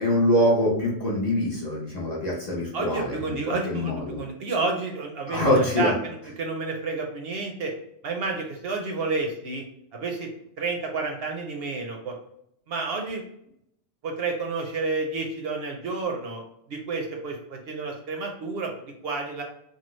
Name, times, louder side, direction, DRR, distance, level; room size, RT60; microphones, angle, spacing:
voice 1, 0.0-4.2 5.3-5.9, left 1 dB, 40° left, -4 dB, 0.8 m, -24 dB
voice 2, 2.7-7.7 8.0-9.6 9.9-10.3 10.6-12.1 12.7-13.2 14.0-16.4 16.7-19.4, right 3 dB, 65° right, 2 dB, 0.7 m, -30 dB
3.1 x 2.2 x 3.0 m, 0.75 s
omnidirectional pair, 1.2 m